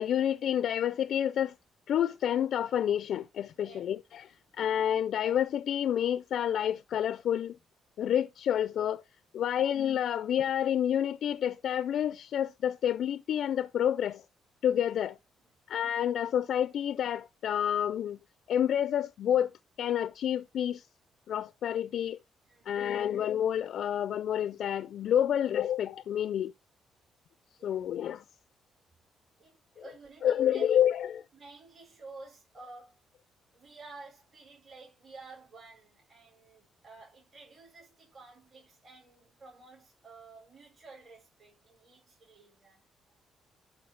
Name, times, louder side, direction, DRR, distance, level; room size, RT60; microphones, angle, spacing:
voice 1, 0.0-1.5 1.9-7.6 8.0-9.0 9.3-14.2 14.6-15.2 15.7-18.2 18.5-19.5 19.8-20.9 21.3-22.2 22.7-26.5 27.6-28.2 30.2-31.2, left 10 dB, 70° left, 0.4 m, -29 dB
voice 2, 22.5-22.9 27.6-27.9 29.4-30.8 31.3-33.0 33.5-42.8, right 3 dB, 40° right, 4.5 m, -52 dB
11.5 x 3.9 x 5.7 m
cardioid pair, 90°, 0 cm